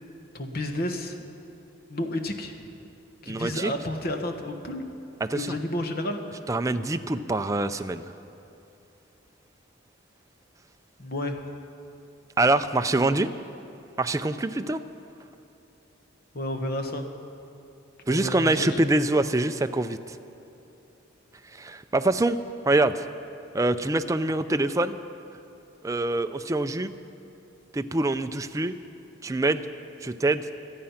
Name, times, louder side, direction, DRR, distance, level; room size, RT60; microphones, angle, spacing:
voice 1, 0.3-1.1 1.9-2.6 3.2-4.8 5.3-6.2 11.0-11.4 16.3-17.1 18.1-18.8, left 1 dB, 50° left, 5 dB, 1.2 m, -31 dB
voice 2, 3.3-3.7 5.2-5.6 6.5-8.1 12.4-13.3 14.0-14.8 18.1-20.2 21.5-22.4 22.7-23.1 23.5-25.0 25.8-26.9 27.7-28.7 29.2-29.6 30.0-30.5, right 2 dB, 15° right, 9 dB, 0.4 m, -25 dB
25.0 x 8.7 x 5.8 m, 2.9 s
head